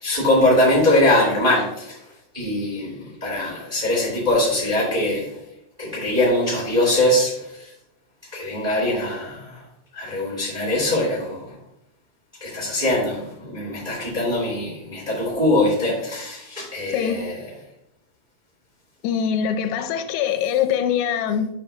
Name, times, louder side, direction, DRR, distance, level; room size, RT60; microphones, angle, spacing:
voice 1, 0.0-2.0 2.3-5.3 5.8-7.3 7.6-7.7 8.3-9.5 9.9-11.4 12.4-17.3, left 1 dB, 15° right, -2 dB, 2.0 m, -22 dB
voice 2, 19.0-21.5, left 8 dB, 90° left, 8 dB, 3.4 m, -23 dB
11.0 x 6.4 x 2.6 m, 0.81 s
omnidirectional pair, 5.9 m